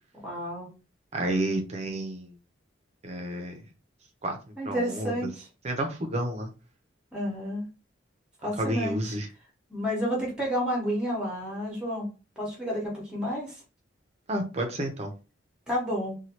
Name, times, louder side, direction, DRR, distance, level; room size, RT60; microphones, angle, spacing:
voice 1, 0.2-0.7 4.6-5.5 7.1-7.7 8.4-9.1 9.7-12.1 12.4-13.6 15.7-16.2, equal, 5° right, -2 dB, 1.0 m, -30 dB
voice 2, 1.1-2.4 3.0-3.6 4.2-4.4 4.7-5.2 5.6-6.5 8.6-9.3 14.3-15.1, right 1 dB, 35° right, 4 dB, 0.6 m, -30 dB
3.1 x 2.3 x 2.9 m, 0.32 s
head